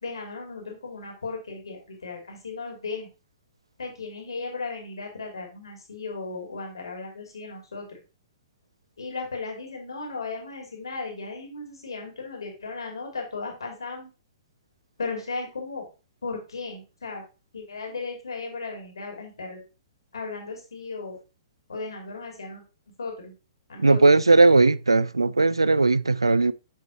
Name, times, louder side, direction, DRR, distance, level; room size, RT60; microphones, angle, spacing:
voice 1, 0.0-3.1 3.8-8.0 9.0-14.1 15.0-15.8 16.2-17.2 17.5-19.6 20.1-21.2 21.7-22.6 23.0-23.3 23.7-24.0, left 4 dB, 75° left, 2.8 m, -36 dB
voice 2, 23.8-26.5, right 3 dB, 90° right, 0.3 m, -18 dB
7.6 x 5.4 x 2.9 m
figure-of-eight pair, 120°, 3 cm